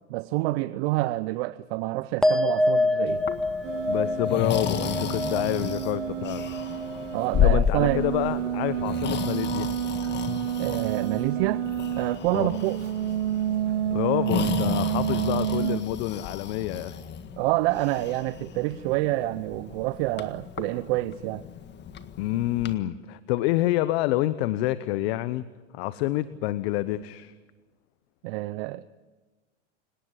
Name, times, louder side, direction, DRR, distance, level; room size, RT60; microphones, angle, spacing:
voice 1, 0.1-3.2 7.1-8.0 10.6-11.6 12.0-12.8 17.4-21.4 28.2-28.9, right 19 dB, 55° right, 15 dB, 0.8 m, -27 dB
sound 1, 2.2-8.9 9.2-9.8, left 1 dB, ahead, 0.9 m, -28 dB
Breathing, 3.1-22.7, left 8 dB, 30° left, 1.8 m, -33 dB
sound 2, 3.6-12.1 12.4-15.8, right 11 dB, 85° right, 2.1 m, -29 dB
voice 2, 3.8-6.5 7.4-9.7 12.3-12.6 13.9-17.0 22.2-25.4 25.7-27.3, left 16 dB, 55° left, 15 dB, 1.0 m, -28 dB
30.0 x 18.5 x 8.2 m, 1.2 s
hypercardioid pair, 115°, 36 cm